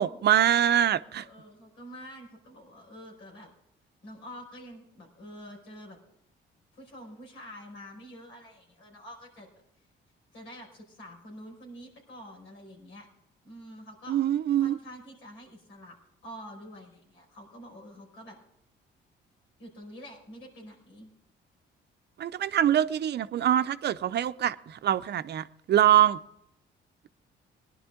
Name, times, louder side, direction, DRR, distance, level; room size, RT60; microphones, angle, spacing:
voice 1, 0.0-1.2 14.1-14.8 22.2-26.2, right 11 dB, 60° right, 0.6 m, -24 dB
voice 2, 1.1-3.5 4.0-6.0 6.7-9.5 10.3-13.1 13.4-14.2 14.6-15.9 16.2-18.4 19.6-21.1, equal, 90° left, 5.2 m, -47 dB
19.5 x 11.0 x 3.7 m
cardioid pair, 90°, 20 cm